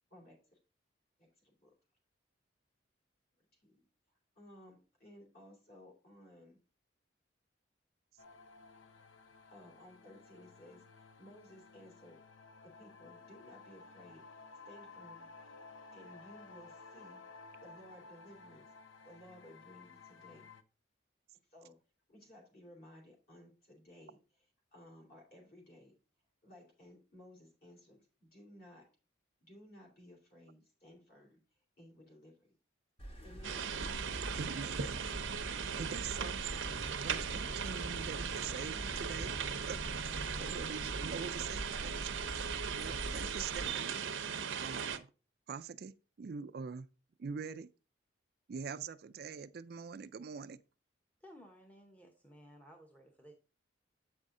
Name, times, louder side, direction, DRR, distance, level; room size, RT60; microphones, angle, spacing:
voice 1, 0.1-0.6 1.2-1.7 3.6-3.8 4.3-6.6 9.5-12.2 12.6-14.3 14.6-15.6 15.9-17.2 17.6-18.7 19.0-20.5 21.5-21.8 22.1-24.2 24.7-26.0 26.4-28.9 29.4-31.4 31.8-32.5 33.2-33.7, left 1 dB, 50° left, 3.1 m, -57 dB
sound 1, 8.2-20.6, left 4 dB, 80° left, 0.7 m, -55 dB
sound 2, 33.0-43.7, right 1 dB, 30° left, 1.3 m, -45 dB
sound 3, 33.4-45.0, right 7 dB, 80° right, 0.7 m, -38 dB
voice 2, 34.3-35.0 35.8-36.4 36.8-39.3 39.7-39.8 40.4-42.5 42.7-45.1 45.5-46.9 47.2-47.7 48.5-50.6, right 6 dB, 50° right, 0.4 m, -44 dB
voice 3, 51.2-53.3, equal, 10° left, 0.8 m, -57 dB
8.1 x 5.4 x 3.7 m
head